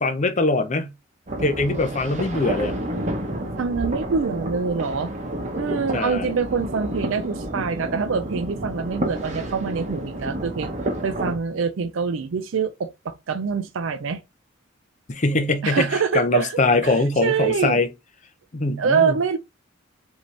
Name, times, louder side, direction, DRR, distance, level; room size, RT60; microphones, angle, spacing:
voice 1, 0.0-0.9 1.4-2.8 5.9-6.3 15.1-17.9 18.5-19.1, left 2 dB, 35° left, 0.6 m, -22 dB
sound 1, 1.3-11.4, right 1 dB, 35° right, 0.9 m, -30 dB
voice 2, 3.6-5.1 5.5-10.7 11.0-14.2 15.6-17.8 18.8-19.4, right 5 dB, 75° right, 0.4 m, -25 dB
5.1 x 2.8 x 3.2 m
head